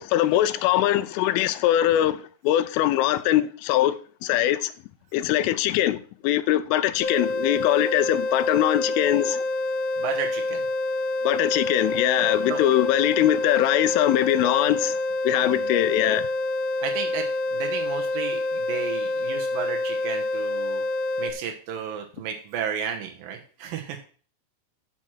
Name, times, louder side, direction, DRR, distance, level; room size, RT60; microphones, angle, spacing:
voice 1, 0.0-4.7 5.1-9.4 11.2-15.0 15.2-16.3, left 13 dB, 90° left, 3.2 m, -22 dB
sound 1, 7.0-21.3, left 2 dB, 70° left, 2.9 m, -27 dB
voice 2, 10.0-10.6 12.5-12.6 15.4-15.7 16.8-17.3 17.5-20.8 21.2-24.0, right 7 dB, 75° right, 2.1 m, -33 dB
9.4 x 6.4 x 5.7 m
omnidirectional pair, 5.6 m